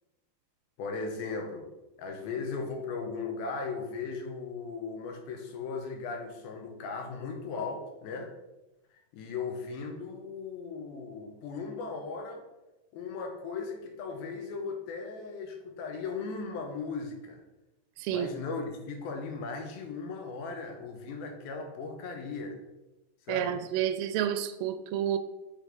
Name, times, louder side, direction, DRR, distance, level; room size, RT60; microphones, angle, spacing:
voice 1, 0.8-1.7 2.0-8.3 9.1-12.5 12.9-17.4 18.1-22.6 23.3-23.6, left 4 dB, 85° left, 2.9 m, -37 dB
voice 2, 18.0-18.3 23.3-25.2, right 10 dB, 80° right, 2.1 m, -30 dB
6.3 x 4.7 x 5.3 m
omnidirectional pair, 4.2 m